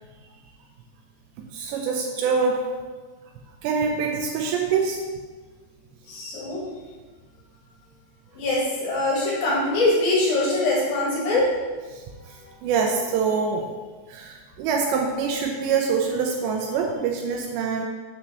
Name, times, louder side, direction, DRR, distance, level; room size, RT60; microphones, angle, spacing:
voice 1, 1.5-2.7 3.6-5.0 11.9-13.7 14.1-17.9, right 5 dB, 80° right, 2 dB, 2.7 m, -25 dB
voice 2, 6.1-6.6 8.3-11.4, left 2 dB, 60° left, -5 dB, 3.2 m, -23 dB
7.4 x 4.5 x 6.7 m, 1.4 s
omnidirectional pair, 5.4 m